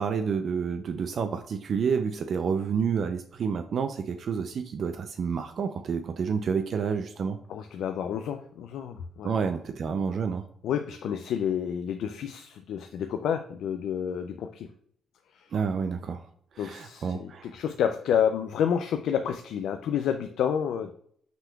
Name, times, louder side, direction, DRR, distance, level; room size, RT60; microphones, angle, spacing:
voice 1, 0.0-7.4 9.2-10.4 15.5-16.2 16.6-17.5, right 6 dB, 55° right, 7 dB, 0.4 m, -29 dB
voice 2, 7.5-9.3 10.6-14.7 15.4-15.5 16.6-20.9, left 8 dB, 75° left, 7 dB, 0.3 m, -29 dB
5.8 x 3.6 x 2.3 m, 0.65 s
cardioid pair, 90°, 0 cm